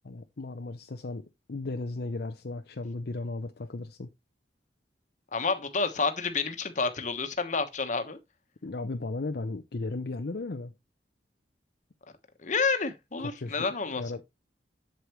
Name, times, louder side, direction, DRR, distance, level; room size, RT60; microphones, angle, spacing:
voice 1, 0.0-4.1 8.6-10.7 13.4-13.7 13.9-14.2, left 3 dB, 60° left, 0.6 m, -35 dB
voice 2, 5.3-8.2 12.4-14.0, left 4 dB, 45° left, 1.3 m, -29 dB
8.1 x 7.6 x 3.1 m
head